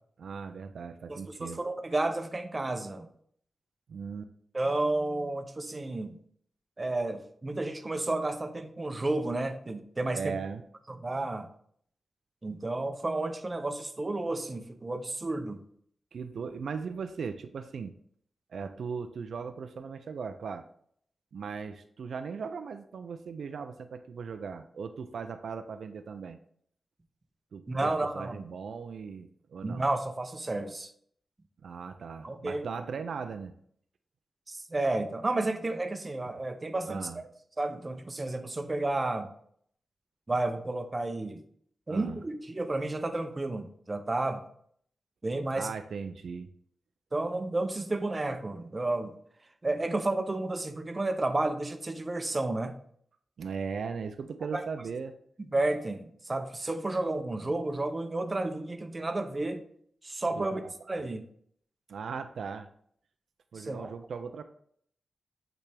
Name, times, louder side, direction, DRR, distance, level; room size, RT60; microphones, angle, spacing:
voice 1, 0.2-1.6 3.9-4.3 10.1-10.6 16.1-17.9 18.5-20.6 21.3-26.4 27.5-29.9 31.6-33.5 36.2-36.3 36.9-37.2 41.9-42.2 45.5-46.5 53.4-55.1 60.4-61.1 61.9-62.7 63.5-64.4, right 5 dB, 80° right, 9 dB, 0.4 m, -38 dB
voice 2, 1.1-3.1 4.5-6.2 6.8-10.4 10.9-11.5 12.4-15.6 27.7-28.4 29.6-30.9 32.2-32.9 34.5-37.3 37.6-39.3 40.3-41.4 41.9-44.4 45.2-45.7 47.1-49.2 49.6-52.8 54.5-54.6 55.5-59.6 60.0-60.6 60.9-61.2 63.5-63.9, right 2 dB, 25° right, 7 dB, 0.6 m, -31 dB
8.3 x 3.3 x 3.4 m, 0.64 s
wide cardioid pair, 135°, 0 cm